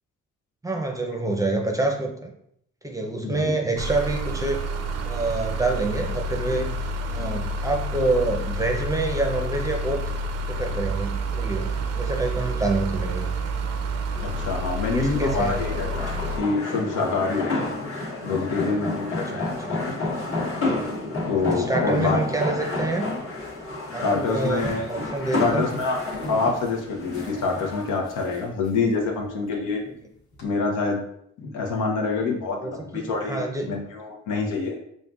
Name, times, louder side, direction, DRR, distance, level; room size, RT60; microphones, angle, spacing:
voice 1, 0.6-2.3 2.8-4.6 5.0-6.7 7.1-10.0 10.5-13.3 14.8-15.6 19.2-19.8 21.4-23.1 23.9-25.7 29.8-29.9 32.6-33.8, right 2 dB, 10° right, 2 dB, 0.6 m, -27 dB
voice 2, 3.2-3.6 14.2-17.6 18.2-20.0 21.3-22.2 24.0-24.9 25.4-26.0 26.3-29.8 30.4-31.0 31.4-34.8, left 4 dB, 85° left, 1 dB, 0.9 m, -26 dB
sound 1, 3.8-16.4, right 1 dB, 60° right, 0.5 m, -29 dB
sound 2, 14.1-27.9, left 2 dB, 45° left, 1.2 m, -30 dB
sound 3, 23.4-30.4, left 1 dB, 65° left, 1.3 m, -44 dB
5.3 x 2.5 x 2.4 m, 0.72 s
cardioid pair, 90°, 30 cm